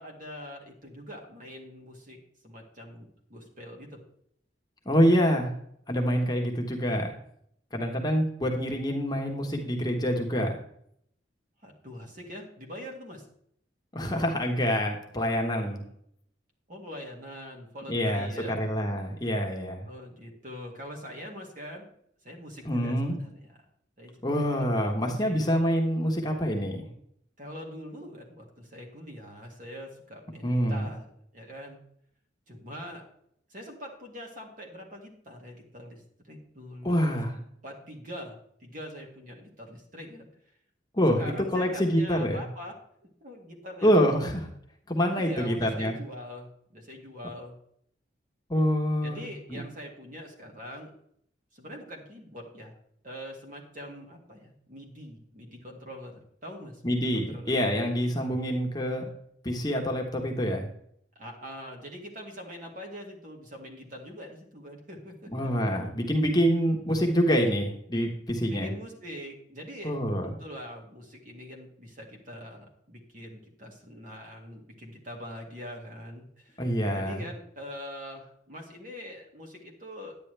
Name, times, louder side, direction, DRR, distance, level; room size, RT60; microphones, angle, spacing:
voice 1, 0.0-2.2 2.4-4.0 11.6-13.2 16.7-18.6 19.8-21.9 22.2-23.6 24.0-25.5 27.4-31.8 32.5-33.0 33.5-36.0 36.3-37.2 37.6-40.3 41.2-42.8 43.2-44.0 45.1-47.5 49.0-50.9 51.5-52.7 53.0-57.6 61.2-65.5 68.5-70.0 70.4-76.6 76.9-80.2, equal, 45° right, 1 dB, 2.1 m, -43 dB
voice 2, 4.8-5.5 5.9-7.1 7.7-10.6 13.9-15.8 17.9-19.9 22.6-23.2 24.2-26.9 30.4-30.9 36.8-37.3 40.9-41.2 41.5-42.4 43.8-44.5 44.9-45.9 48.5-49.2 49.5-49.6 56.8-59.0 59.4-60.7 65.3-68.7 69.8-70.3 76.6-77.2, equal, 20° left, 2 dB, 1.2 m, -26 dB
10.0 x 9.2 x 3.3 m, 0.69 s
head